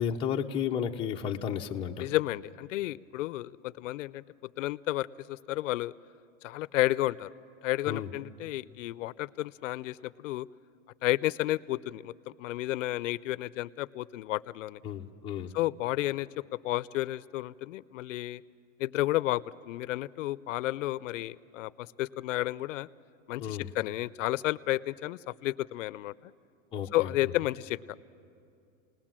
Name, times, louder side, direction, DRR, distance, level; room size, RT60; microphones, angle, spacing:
voice 1, 0.0-2.1 7.9-8.1 14.8-15.5 23.4-23.7 26.7-27.1, left 8 dB, 15° left, 1 dB, 0.6 m, -32 dB
voice 2, 2.0-4.2 4.6-5.9 6.4-7.3 7.6-10.5 11.0-14.8 15.5-16.3 16.6-18.4 18.8-22.9 23.3-26.3 26.9-27.8, left 16 dB, 70° left, 18 dB, 0.6 m, -32 dB
29.5 x 20.0 x 7.4 m, 2.5 s
supercardioid pair, 155°, 39 cm